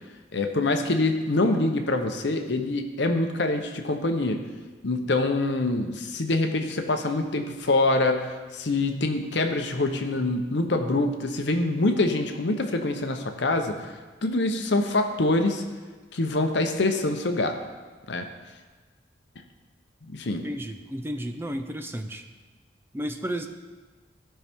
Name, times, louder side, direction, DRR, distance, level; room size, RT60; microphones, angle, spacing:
voice 1, 0.3-4.4 4.8-13.9 14.2-15.6 16.1-17.6 18.1-18.3 20.1-20.4, left 2 dB, 70° left, 6 dB, 0.8 m, -25 dB
voice 2, 20.4-22.2 22.9-23.5, equal, 10° right, 6 dB, 0.4 m, -32 dB
14.5 x 5.6 x 3.6 m, 1.3 s
head